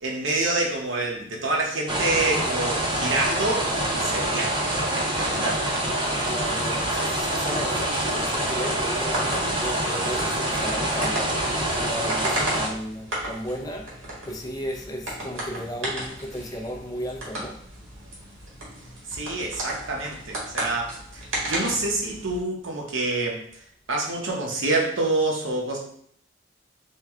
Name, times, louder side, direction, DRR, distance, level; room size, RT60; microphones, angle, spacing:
voice 1, 0.0-5.6 19.1-23.4 23.9-25.8, right 2 dB, 70° right, 0 dB, 0.9 m, -27 dB
sound 1, 1.9-12.7, right 1 dB, 25° right, 0.7 m, -26 dB
voice 2, 6.2-11.3 11.7-17.6, equal, 20° left, 1 dB, 0.5 m, -35 dB
sound 2, 8.8-22.4, right 1 dB, 90° right, 1.6 m, -35 dB
4.5 x 2.3 x 3.5 m, 0.64 s
head